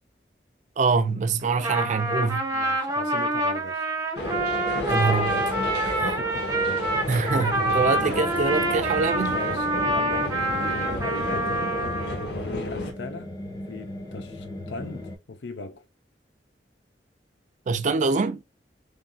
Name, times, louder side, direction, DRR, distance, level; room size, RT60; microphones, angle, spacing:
voice 1, 0.8-2.5 4.9-5.5 7.1-9.4 17.7-18.4, right 4 dB, 45° right, 0.4 m, -24 dB
Trumpet, 1.4-12.3, right 1 dB, 20° right, 0.8 m, -27 dB
voice 2, 2.5-3.9 5.8-6.9 9.3-11.7 12.3-15.9, left 3 dB, 85° left, 0.6 m, -39 dB
sound 1, 4.1-12.9, left 1 dB, 65° left, 1.0 m, -31 dB
sound 2, 9.6-15.2, left 1 dB, 25° left, 0.8 m, -40 dB
3.4 x 2.6 x 2.2 m
head